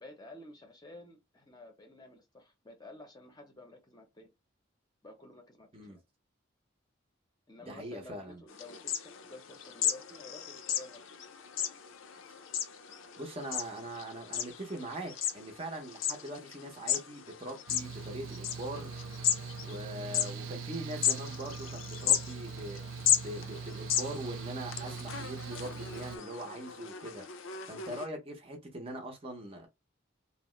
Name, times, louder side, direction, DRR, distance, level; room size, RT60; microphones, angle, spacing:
voice 1, 0.0-4.3 5.0-6.0 7.5-11.1 13.5-13.6, left 2 dB, 20° left, 0.6 m, -52 dB
voice 2, 7.7-8.4 13.2-18.9 19.6-22.8 23.2-27.3 27.7-29.7, right 1 dB, 30° right, 0.6 m, -42 dB
sound 1, 8.5-28.1, left 10 dB, 75° left, 0.5 m, -35 dB
Mechanical fan, 17.7-26.2, right 6 dB, 75° right, 0.3 m, -42 dB
2.8 x 2.0 x 3.0 m
head